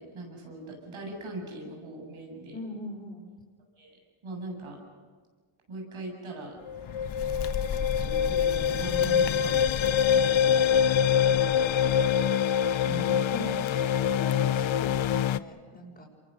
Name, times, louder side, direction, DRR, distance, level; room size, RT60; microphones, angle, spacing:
voice 1, 0.0-2.6 3.8-4.0 4.2-4.8 5.7-6.6 7.7-9.6 10.1-12.5 12.8-13.1, right 1 dB, 80° right, 2 dB, 7.8 m, -41 dB
voice 2, 2.5-3.2 12.8-16.0, left 1 dB, 20° left, -6 dB, 6.3 m, -41 dB
Bird, 6.6-12.3, left 7 dB, 55° left, 1.0 m, -37 dB
sound 1, 6.7-15.4, left 8 dB, 70° left, 0.8 m, -25 dB
28.0 x 23.0 x 6.7 m, 1.5 s
cardioid pair, 70°, 48 cm